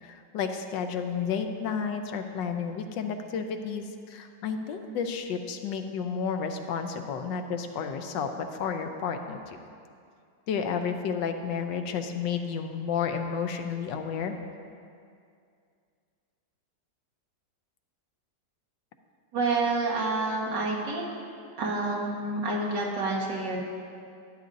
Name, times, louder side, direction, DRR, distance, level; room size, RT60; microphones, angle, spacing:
voice 1, 0.0-9.6 10.5-14.3, left 6 dB, 80° left, 6 dB, 1.3 m, -31 dB
voice 2, 19.3-21.1 21.6-23.6, right 3 dB, 75° right, -3 dB, 2.0 m, -28 dB
12.0 x 10.0 x 2.6 m, 2.3 s
omnidirectional pair, 1.9 m